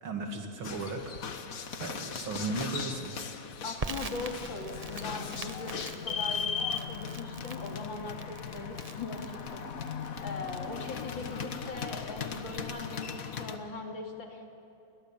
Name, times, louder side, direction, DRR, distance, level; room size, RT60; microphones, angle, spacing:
voice 1, 0.0-1.0 1.8-3.1, right 3 dB, 90° right, 3 dB, 2.9 m, -36 dB
sound 1, 0.6-13.6, left 6 dB, 50° left, 1.5 m, -38 dB
voice 2, 3.6-6.6 6.9-9.6 10.2-14.5, left 3 dB, 70° left, 2 dB, 3.4 m, -40 dB
Crackle, 3.8-12.6, right 4 dB, 45° right, 0.5 m, -45 dB
30.0 x 22.0 x 7.3 m, 2.8 s
omnidirectional pair, 2.2 m